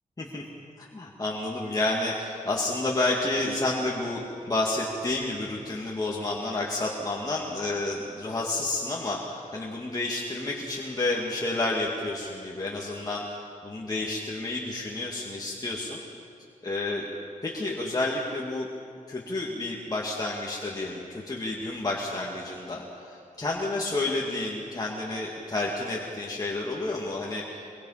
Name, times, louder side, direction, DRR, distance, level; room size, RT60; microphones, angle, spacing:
voice 1, 0.8-16.0 16.6-17.1 17.4-18.7 19.1-27.5, left 2 dB, 25° left, -3 dB, 2.3 m, -30 dB
23.5 x 23.0 x 5.8 m, 2.5 s
wide cardioid pair, 110°, 14 cm